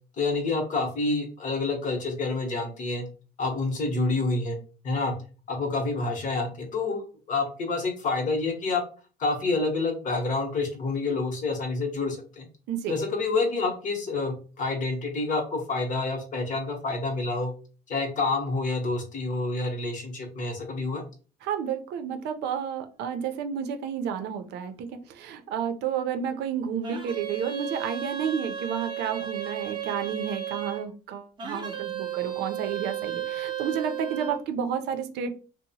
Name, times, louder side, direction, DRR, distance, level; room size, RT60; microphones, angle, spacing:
voice 1, 0.2-3.0 3.4-5.1 5.5-8.8 9.2-12.5 12.9-17.5 17.9-21.0, left 3 dB, 50° left, 4 dB, 0.9 m, -28 dB
voice 2, 21.4-35.3, right 8 dB, 80° right, 7 dB, 0.5 m, -31 dB
sound 1, 26.8-30.9 31.4-34.4, right 9 dB, 25° right, 0.6 m, -34 dB
2.8 x 2.0 x 2.7 m, 0.37 s
cardioid pair, 110°, 17 cm